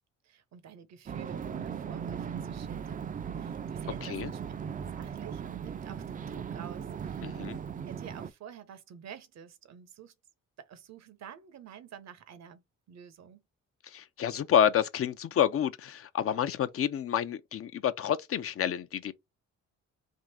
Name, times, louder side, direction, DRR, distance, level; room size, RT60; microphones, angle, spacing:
voice 1, 0.2-4.4 4.7-7.3 7.9-10.1 10.6-13.4, right 8 dB, 60° right, 0.8 m, -50 dB
sound 1, 1.1-8.3, right 7 dB, 30° right, 0.4 m, -38 dB
voice 2, 7.2-7.6 13.8-19.1, left 9 dB, 50° left, 0.5 m, -29 dB
3.6 x 2.5 x 4.1 m
cardioid pair, 90°, 30 cm